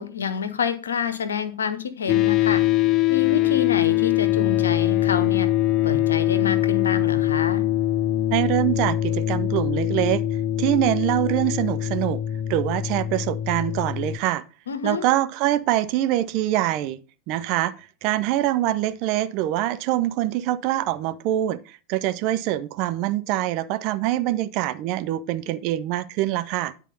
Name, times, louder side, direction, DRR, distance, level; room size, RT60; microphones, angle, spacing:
voice 1, 0.0-2.6 3.1-5.5 5.8-7.6 14.7-15.1, left 6 dB, 70° left, 1.0 m, -28 dB
sound 1, 2.1-14.2, left 14 dB, 35° left, 0.4 m, -23 dB
voice 2, 8.3-10.2 10.6-12.2 12.5-14.4 14.8-17.7 18.0-26.7, right 14 dB, 40° right, 0.6 m, -24 dB
10.0 x 4.5 x 5.3 m
figure-of-eight pair, 90°, 0 cm